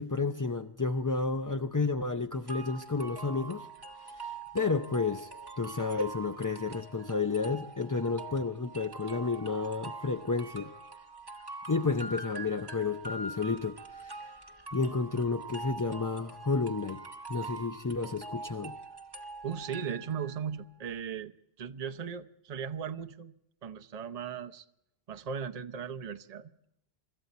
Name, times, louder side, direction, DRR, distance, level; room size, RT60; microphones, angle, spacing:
voice 1, 0.0-3.7 4.0-10.7 11.7-14.3 14.7-17.0 17.3-18.8, left 4 dB, 30° left, 0.4 m, -31 dB
sound 1, 2.5-20.4, right 3 dB, 25° right, 1.0 m, -44 dB
voice 2, 19.4-21.3 21.6-23.3 23.6-24.6 25.1-26.5, right 7 dB, 40° right, 0.7 m, -37 dB
25.0 x 13.5 x 4.1 m
omnidirectional pair, 1.1 m